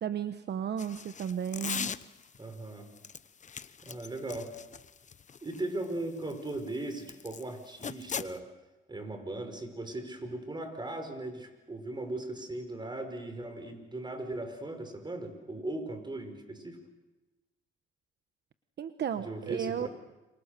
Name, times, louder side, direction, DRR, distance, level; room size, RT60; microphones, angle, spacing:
voice 1, 0.0-1.9 18.8-19.9, right 8 dB, 60° right, 10 dB, 1.2 m, -34 dB
sound 1, 0.8-2.4 3.0-7.4 7.8-8.4, left 6 dB, 40° left, 1.0 m, -39 dB
voice 2, 2.4-2.9 3.8-4.5 5.4-8.5 8.9-16.8 19.2-19.9, right 2 dB, 20° right, 7 dB, 5.5 m, -38 dB
29.5 x 26.0 x 6.8 m, 1.1 s
cardioid pair, 90°, 20 cm